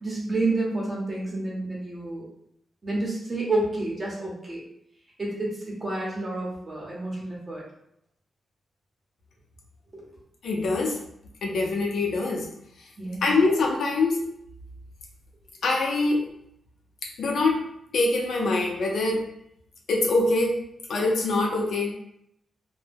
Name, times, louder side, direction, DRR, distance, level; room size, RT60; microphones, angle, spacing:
voice 1, 0.0-2.2 2.8-4.6 5.2-5.5 5.8-7.6 9.9-10.0 13.0-13.2, right 2 dB, 25° right, -5 dB, 0.8 m, -29 dB
voice 2, 10.4-11.0 11.4-12.5 13.2-14.2 15.6-16.3 17.2-17.6 17.9-19.2 19.9-20.6 20.9-21.9, left 2 dB, 75° left, -1 dB, 0.6 m, -24 dB
2.2 x 2.1 x 3.3 m, 0.74 s
wide cardioid pair, 120°, 0 cm